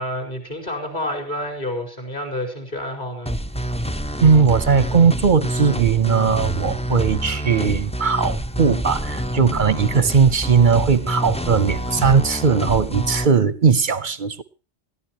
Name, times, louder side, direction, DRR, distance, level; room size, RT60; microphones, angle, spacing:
voice 1, 0.0-3.3, left 1 dB, 40° left, 5.0 m, -29 dB
sound 1, 3.3-13.3, equal, 10° left, 0.5 m, -27 dB
voice 2, 4.2-14.4, right 6 dB, 45° right, 0.8 m, -18 dB
20.5 x 14.5 x 3.0 m
omnidirectional pair, 1.2 m